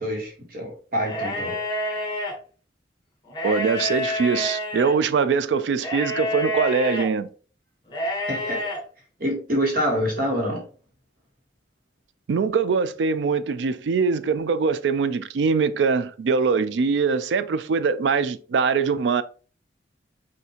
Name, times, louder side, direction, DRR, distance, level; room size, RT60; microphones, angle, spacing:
voice 1, 0.0-1.5 8.3-8.6 9.2-10.6, equal, 55° right, 1.4 m, -26 dB
sound 1, 1.0-2.3 3.3-5.0 5.8-7.1 7.9-8.8, left 1 dB, 25° left, 1.1 m, -28 dB
voice 2, 3.4-7.3 12.3-19.2, right 5 dB, 80° right, 0.4 m, -22 dB
5.6 x 2.6 x 2.8 m
head